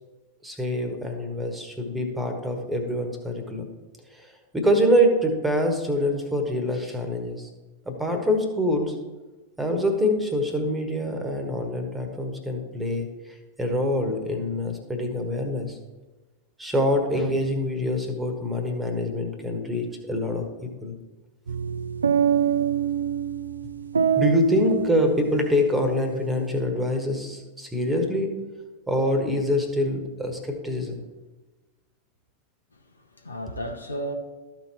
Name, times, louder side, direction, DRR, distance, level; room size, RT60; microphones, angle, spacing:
voice 1, 0.4-3.7 4.5-7.5 7.9-9.0 9.6-13.1 13.6-15.7 16.6-20.9 24.2-28.3 28.9-31.0, left 1 dB, 10° right, 1.4 m, -25 dB
sound 1, 21.5-25.9, right 8 dB, 75° right, 0.4 m, -25 dB
voice 2, 32.7-34.1, right 1 dB, 80° left, 0.9 m, -34 dB
13.5 x 4.5 x 4.3 m
figure-of-eight pair, 90°, 0 cm